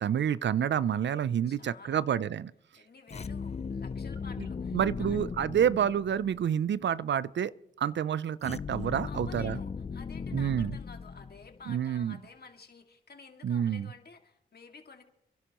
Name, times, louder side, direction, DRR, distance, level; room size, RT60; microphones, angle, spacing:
voice 1, 0.0-2.5 4.7-7.5 7.8-9.6 10.3-10.7 11.7-12.2 13.4-13.9, right 9 dB, 65° right, 0.5 m, -28 dB
voice 2, 1.5-2.0 2.7-5.2 9.0-15.0, left 4 dB, 50° left, 2.2 m, -51 dB
sound 1, 3.1-6.4 8.4-11.7, left 5 dB, 35° left, 0.5 m, -37 dB
29.5 x 11.0 x 3.0 m
cardioid pair, 55°, 20 cm